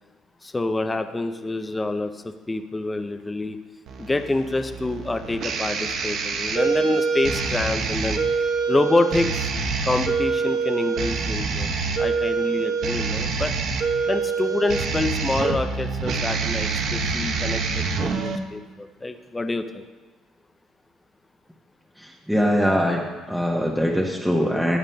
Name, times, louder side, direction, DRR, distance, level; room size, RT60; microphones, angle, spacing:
voice 1, 0.4-2.1 2.5-3.6 4.0-8.2 8.7-9.5 9.8-11.7 12.0-13.5 14.1-18.6 19.0-19.8, left 2 dB, 15° left, 7 dB, 0.4 m, -26 dB
sound 1, 3.9-18.4, right 4 dB, 65° right, 0.8 m, -25 dB
voice 2, 22.0-23.0 23.3-24.8, equal, ahead, -1 dB, 0.8 m, -22 dB
14.5 x 8.8 x 2.2 m, 1.3 s
cardioid pair, 115°, 0 cm